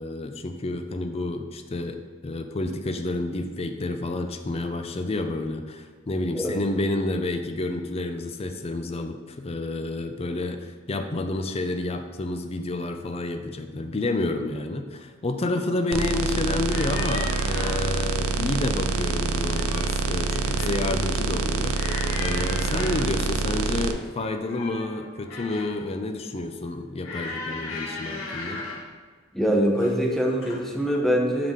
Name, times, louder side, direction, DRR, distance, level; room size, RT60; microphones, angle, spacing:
voice 1, 0.0-21.8 22.2-28.6, left 2 dB, 30° left, 6 dB, 0.5 m, -29 dB
sound 1, 15.9-23.9, right 4 dB, 80° right, 0.5 m, -26 dB
sound 2, 16.7-17.9 19.3-19.9 20.3-20.8 21.7-23.2 24.1-25.8 27.0-28.9 29.8-30.1 30.4-30.6, left 3 dB, 75° left, 1.5 m, -36 dB
voice 2, 29.3-31.5, equal, ahead, 0 dB, 0.8 m, -23 dB
7.6 x 4.9 x 3.7 m, 1.5 s
head